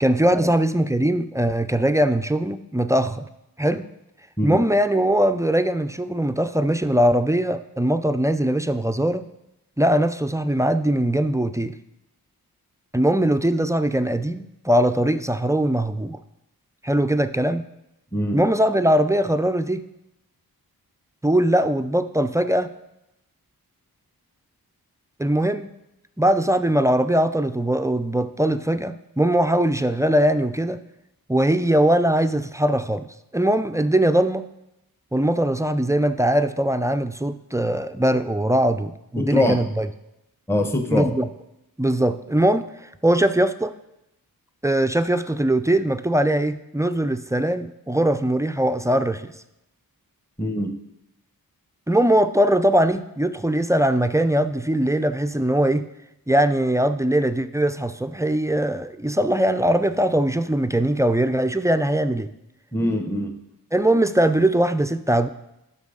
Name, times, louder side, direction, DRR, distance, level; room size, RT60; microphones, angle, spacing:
voice 1, 0.0-3.2 3.6-3.9 4.4-9.3 9.8-11.7 12.9-16.2 16.8-17.7 18.3-19.8 21.2-22.7 25.2-25.7 26.2-30.8 31.3-33.1 33.3-34.5 35.1-39.9 40.9-41.3 41.8-42.7 43.0-43.7 44.6-49.3 51.9-55.9 56.3-62.3 63.7-65.3, right 1 dB, 10° right, 10 dB, 0.3 m, -21 dB
voice 2, 39.2-39.6 40.5-41.1 50.4-50.7 62.7-63.3, left 1 dB, 5° left, 5 dB, 0.8 m, -23 dB
11.5 x 5.8 x 3.7 m, 0.89 s
wide cardioid pair, 75°, 37 cm